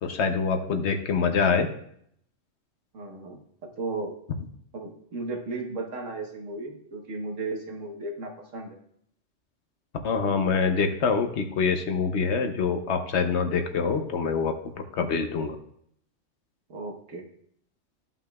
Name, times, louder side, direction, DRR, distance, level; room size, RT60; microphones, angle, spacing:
voice 1, 0.0-1.7 10.0-14.5 14.9-15.6, left 5 dB, 65° left, 6 dB, 1.0 m, -25 dB
voice 2, 2.9-3.4 3.8-4.1 4.7-8.8 16.7-17.3, right 3 dB, 85° right, 2 dB, 1.6 m, -35 dB
13.0 x 5.6 x 2.3 m, 0.69 s
omnidirectional pair, 1.3 m